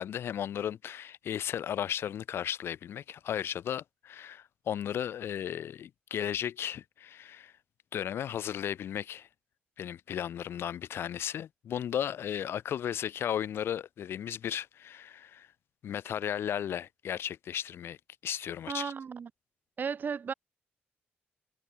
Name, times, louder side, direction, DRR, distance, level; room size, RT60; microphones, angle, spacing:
voice 1, 0.0-7.5 7.9-9.3 9.8-15.5 15.8-18.0 18.2-18.9, left 10 dB, 75° left, 0.6 m, -35 dB
voice 2, 18.7-19.3 19.8-20.3, right 6 dB, 50° right, 0.3 m, -34 dB
cardioid pair, 65°, 4 cm